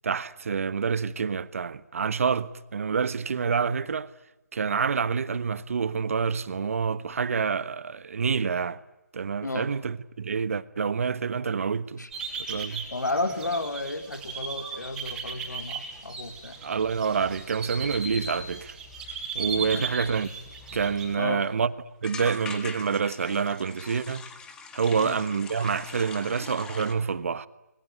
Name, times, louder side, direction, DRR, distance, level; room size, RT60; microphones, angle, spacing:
voice 1, 0.0-4.1 4.5-8.8 9.1-12.0 12.5-12.9 16.6-18.8 19.3-20.3 20.7-21.7 22.0-24.2 24.7-27.5, right 6 dB, 50° right, 1.3 m, -27 dB
sound 1, 12.1-21.1, right 4 dB, 5° right, 5.1 m, -37 dB
voice 2, 12.9-16.6 19.6-19.9 21.2-21.4 24.9-25.2, left 2 dB, 90° left, 4.6 m, -32 dB
sound 2, 20.6-20.7 21.0-21.1 21.3-21.5 22.0-26.9, left 5 dB, 10° left, 1.8 m, -42 dB
25.5 x 22.5 x 9.8 m
figure-of-eight pair, 155°, 9 cm